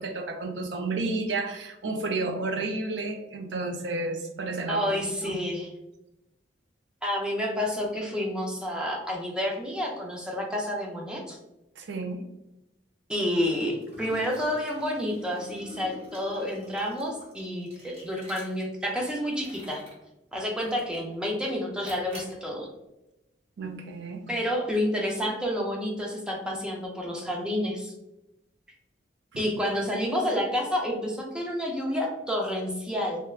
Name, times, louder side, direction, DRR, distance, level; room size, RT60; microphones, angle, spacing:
voice 1, 0.0-5.4 11.8-12.2 23.6-24.2 29.3-29.5, right 3 dB, 70° right, 5 dB, 0.5 m, -31 dB
voice 2, 4.7-5.7 7.0-11.4 13.1-19.8 20.3-22.7 24.3-27.9 29.4-33.3, equal, 5° right, -1 dB, 0.5 m, -29 dB
Liquid, 13.8-18.8 19.3-20.0 20.6-21.1 21.8-22.4, left 1 dB, 35° right, 0.9 m, -46 dB
3.3 x 2.1 x 2.3 m, 0.91 s
head